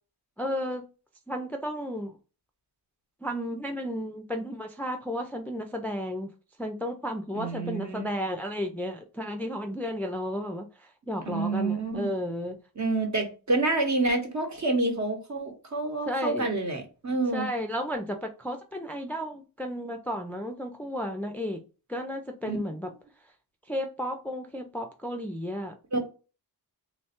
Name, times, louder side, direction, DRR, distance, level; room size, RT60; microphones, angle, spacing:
voice 1, 0.4-0.9 1.3-2.1 3.2-6.3 6.6-12.6 16.1-16.5 17.3-21.6 21.9-22.9 23.7-25.7, equal, 5° left, 0.4 m, -33 dB
voice 2, 7.3-8.1 11.3-12.1 12.8-17.5 22.4-22.6 25.9-26.0, right 2 dB, 45° right, 1.0 m, -28 dB
3.1 x 2.2 x 4.3 m
wide cardioid pair, 115°, 39 cm